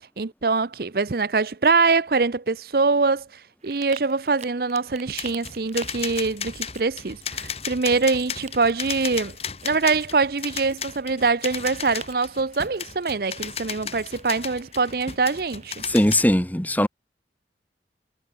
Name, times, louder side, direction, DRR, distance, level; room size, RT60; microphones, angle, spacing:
voice 1, 0.2-3.3 3.6-9.4 9.6-15.8, right 4 dB, 55° right, 0.7 m, -23 dB
sound 1, 3.6-15.9, right 6 dB, 40° right, 7.4 m, -47 dB
sound 2, 5.1-16.3, left 7 dB, 35° left, 3.9 m, -35 dB
voice 2, 15.9-16.9, left 1 dB, 10° left, 1.4 m, -19 dB
head